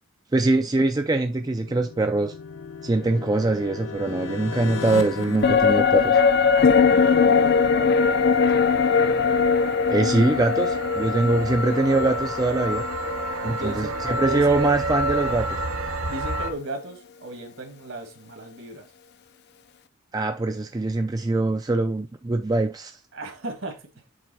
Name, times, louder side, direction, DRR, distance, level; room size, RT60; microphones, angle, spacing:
voice 1, 0.3-2.3 2.8-6.2 9.9-12.9 13.4-15.5 20.1-23.0, right 2 dB, 20° right, 0.4 m, -23 dB
sound 1, 0.9-6.7, left 4 dB, 70° left, 0.9 m, -36 dB
sound 2, 5.4-14.9 15.2-15.3, left 5 dB, 50° left, 0.5 m, -21 dB
sound 3, 6.0-16.5, right 1 dB, 85° right, 1.1 m, -31 dB
voice 2, 6.5-8.5 13.4-14.7 16.1-18.8 23.1-23.8, right 1 dB, 70° right, 2.0 m, -35 dB
7.6 x 3.5 x 4.2 m
head